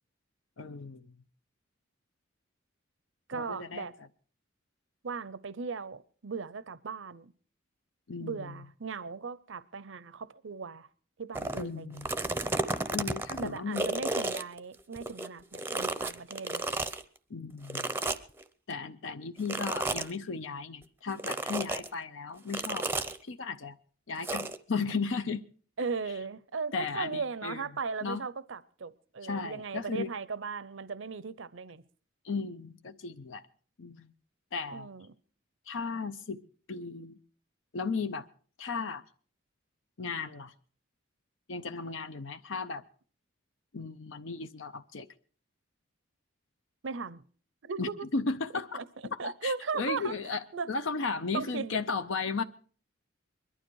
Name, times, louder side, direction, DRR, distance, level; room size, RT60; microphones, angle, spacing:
voice 1, 0.6-1.2 3.3-3.9 8.1-8.7 11.6-12.1 12.9-14.0 17.3-17.9 18.7-22.9 23.2-23.8 24.1-25.4 26.7-27.7 28.0-28.2 29.2-30.1 32.2-33.5 33.8-34.1 34.5-34.9 35.7-36.4 36.7-37.2 37.7-38.3 38.6-39.0 40.0-40.5 41.5-42.8 43.7-45.1 47.8-48.8 49.1-52.4, left 4 dB, 70° left, 0.7 m, -35 dB
voice 2, 3.3-3.9 5.0-7.3 8.2-10.9 11.2-12.0 13.4-16.7 25.8-31.8 34.7-35.1 46.8-47.2 47.6-48.1 48.7-48.8 49.2-50.1 50.5-50.7 51.3-51.8, right 5 dB, 70° right, 0.7 m, -37 dB
sound 1, 11.3-11.6 12.0-15.3 15.5-17.0 17.7-18.4 19.5-20.1 21.2-21.9 22.5-23.2 24.2-24.6, right 2 dB, 10° right, 0.6 m, -32 dB
21.5 x 12.0 x 4.6 m
head